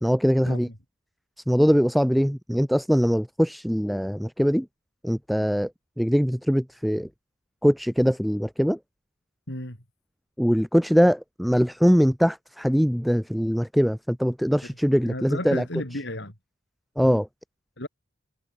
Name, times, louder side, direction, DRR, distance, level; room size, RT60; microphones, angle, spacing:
voice 1, 0.0-0.7 1.5-4.7 5.0-5.7 6.0-7.1 7.6-8.8 10.4-15.6 17.0-17.3, equal, ahead, 1.0 m, -22 dB
voice 2, 9.5-9.8 15.0-16.3 17.8-17.9, left 1 dB, 60° left, 6.9 m, -33 dB
head